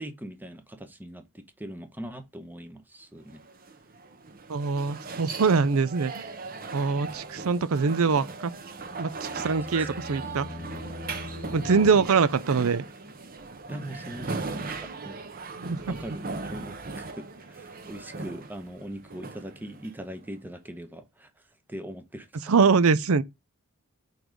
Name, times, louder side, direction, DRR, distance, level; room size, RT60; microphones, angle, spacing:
voice 1, 0.0-3.4 6.6-6.7 9.4-9.9 13.7-15.2 15.9-21.3 21.7-22.3, right 1 dB, 10° right, 0.9 m, -41 dB
sound 1, 3.3-20.3, right 3 dB, 40° right, 0.9 m, -38 dB
voice 2, 4.5-6.2 6.7-8.5 9.0-10.5 11.5-12.9 15.6-15.9 22.5-23.2, right 5 dB, 70° right, 0.6 m, -23 dB
sound 2, 8.7-12.6, left 2 dB, 60° left, 1.1 m, -43 dB
4.6 x 4.1 x 5.1 m
head